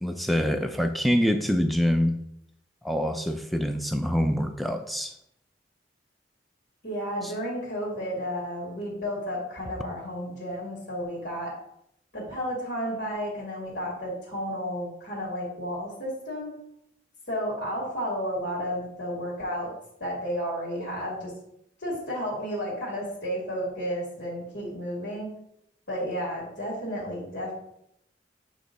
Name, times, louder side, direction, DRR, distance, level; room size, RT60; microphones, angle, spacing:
voice 1, 0.0-2.2 2.8-5.1, equal, ahead, 0.4 m, -25 dB
voice 2, 6.8-11.5 12.1-16.5 17.3-19.7 20.0-21.3 21.8-25.3 25.9-27.5, equal, 80° left, 2.3 m, -32 dB
8.1 x 3.1 x 3.8 m
head